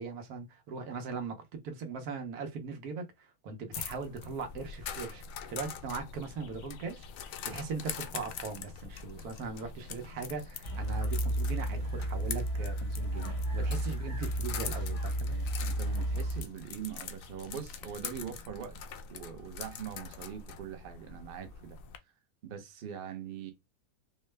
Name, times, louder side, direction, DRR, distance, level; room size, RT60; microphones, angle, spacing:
voice 1, 0.0-5.2 5.5-15.4, right 4 dB, 80° right, 1.3 m, -40 dB
sound 1, 3.7-22.0, left 7 dB, 70° left, 0.9 m, -44 dB
sound 2, 10.6-16.4, right 1 dB, 90° left, 1.8 m, -32 dB
voice 2, 15.3-18.8 19.1-21.8 22.4-23.5, right 8 dB, 50° right, 0.8 m, -42 dB
4.6 x 2.2 x 3.2 m
omnidirectional pair, 1.6 m